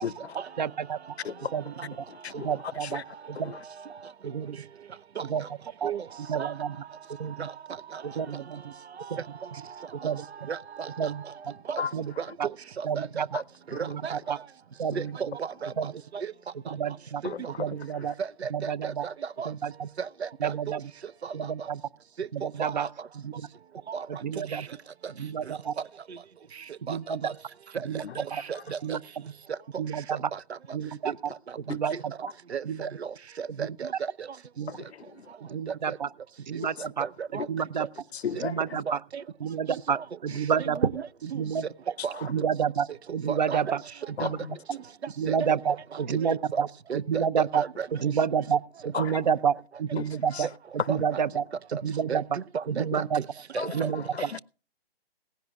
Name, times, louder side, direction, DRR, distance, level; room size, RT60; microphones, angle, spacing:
voice 1, 0.0-0.4 1.2-1.5 2.1-2.5 2.8-3.0 3.4-3.6 8.3-8.4 11.8-11.9 13.7-13.8 14.9-15.0 17.2-17.7 17.9-18.1 28.0-28.2 31.7-31.8 34.7-35.3 36.6-36.7 37.4-37.5 38.1-38.8 42.1-42.3 44.2-44.6 48.9-49.2 50.0-50.1 50.3-50.5 53.6-54.4, left 7 dB, 80° left, 0.7 m, -36 dB
voice 2, 0.6-1.0 1.5-1.9 2.3-3.0 3.3-3.5 4.2-4.6 5.3-5.4 5.8-5.9 6.3-6.8 7.2-7.5 8.0-8.7 9.1-9.2 10.0-10.5 11.0-11.5 11.9-12.1 12.4-12.5 12.8-13.3 13.8-14.4 14.8-15.4 15.8-15.9 16.7-17.2 17.6-18.1 18.5-19.0 19.5-19.9 20.4-20.9 21.3-21.8 22.3-22.9 23.2-23.3 24.1-24.7 25.2-25.7 26.8-27.3 27.8-28.4 28.8-29.0 29.8-30.3 30.7-31.1 31.7-32.1 32.6-32.9 33.5-33.7 34.6-34.7 35.4-36.1 36.4-37.1 37.3-37.9 38.4-39.0 39.4-40.9 41.2-41.7 42.3-42.9 43.1-43.8 44.2-44.4 45.2-46.7 46.9-47.6 47.9-50.5 50.9-51.4 51.8-52.2 52.7-53.2 53.6-54.0, right 7 dB, 45° right, 0.6 m, -29 dB
voice 3, 10.5-11.1 11.7-11.8 12.2-13.4 13.7-14.2 15.0-16.3 17.2-17.5 18.2-19.5 20.0-20.8 21.2-21.3 22.2-22.9 23.9-24.1 26.9-27.3 27.7-27.9 28.2-29.0 30.3-30.6 31.1-31.2 31.9-34.3 35.7-36.0 36.8-37.5 38.4-38.5 39.1-39.2 39.7-40.0 40.6-41.4 42.0-42.2 43.3-43.6 44.2-44.3 45.3-45.6 46.9-47.9 48.9-49.0 50.9-51.2 51.7-51.8 52.1-52.2 52.5-53.0 53.5-53.9, right 7 dB, 90° right, 0.8 m, -34 dB
18.0 x 16.0 x 2.3 m
hypercardioid pair, 165°, 31 cm